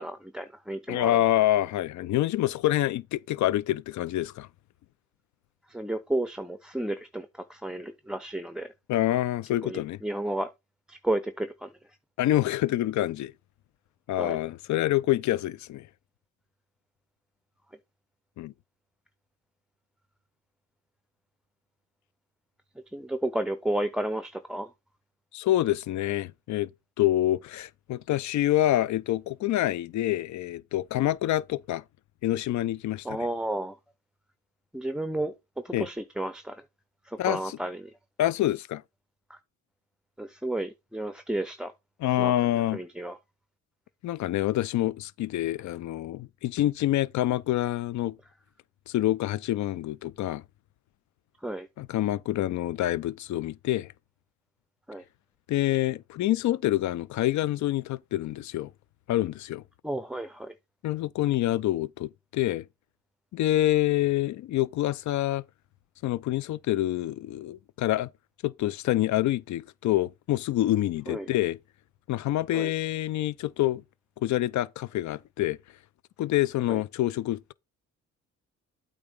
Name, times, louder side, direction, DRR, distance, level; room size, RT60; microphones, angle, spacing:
voice 1, 0.0-1.3 5.7-8.7 9.6-10.5 10.9-11.7 14.1-14.4 22.9-24.7 33.0-33.8 34.7-35.3 35.6-36.6 37.1-37.9 39.3-39.4 40.2-41.7 42.2-43.2 51.4-51.7 54.9-55.0 59.8-60.5 71.1-71.3 72.5-72.7 76.7-76.8, right 1 dB, 5° right, 0.6 m, -32 dB
voice 2, 0.9-4.5 8.9-10.0 12.2-13.3 14.1-15.8 18.4-18.5 25.3-26.7 27.0-31.8 32.2-33.0 35.7-35.9 37.2-37.6 38.2-38.8 42.0-42.8 44.0-48.2 48.9-50.4 51.8-53.9 55.5-58.7 59.1-59.6 60.8-62.6 63.3-65.4 66.0-68.1 68.4-71.6 72.1-73.8 74.2-75.6 76.2-77.5, left 14 dB, 70° left, 0.6 m, -26 dB
8.6 x 3.6 x 5.4 m
cardioid pair, 90°, 30 cm